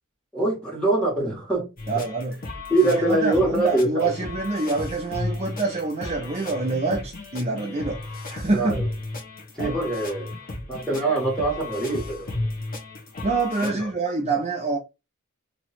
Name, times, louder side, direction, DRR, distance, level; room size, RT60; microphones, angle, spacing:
voice 1, 0.3-1.7 2.7-4.1 8.5-8.9 9.6-10.3 10.7-12.5 13.6-13.8, right 2 dB, 5° left, 1.7 m, -24 dB
sound 1, 1.8-13.7, left 2 dB, 40° left, 1.1 m, -34 dB
voice 2, 1.9-2.4 2.8-8.8 9.6-9.8 13.2-14.8, right 3 dB, 30° right, 0.7 m, -26 dB
3.1 x 2.9 x 4.2 m
head